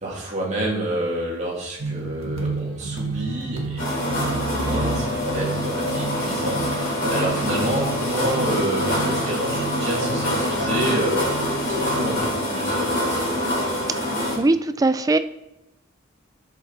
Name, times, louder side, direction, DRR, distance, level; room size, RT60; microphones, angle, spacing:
voice 1, 0.0-13.5, right 1 dB, 35° right, -4 dB, 2.5 m, -29 dB
sound 1, 1.8-12.2, right 2 dB, 75° right, 1.5 m, -30 dB
sound 2, 3.8-14.4, left 1 dB, 60° left, 3.3 m, -25 dB
voice 2, 14.0-15.2, right 2 dB, 15° right, 11 dB, 0.4 m, -21 dB
10.0 x 6.8 x 4.1 m, 0.89 s
head